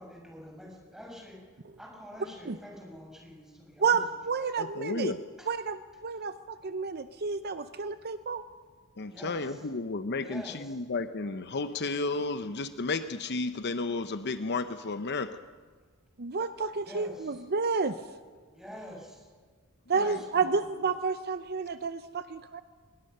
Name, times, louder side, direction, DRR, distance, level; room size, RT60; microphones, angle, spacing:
voice 1, 0.0-4.0 5.4-5.5 9.1-9.7 10.1-10.8 16.8-17.4 18.4-19.3 19.9-20.7, equal, ahead, -2 dB, 6.6 m, -47 dB
voice 2, 3.8-5.1 5.5-8.4 16.2-18.0 19.9-22.6, right 5 dB, 45° right, 11 dB, 0.7 m, -30 dB
voice 3, 4.6-5.2 9.0-15.4 20.0-20.1, left 3 dB, 50° left, 10 dB, 0.8 m, -32 dB
23.5 x 21.5 x 6.8 m, 1.5 s
head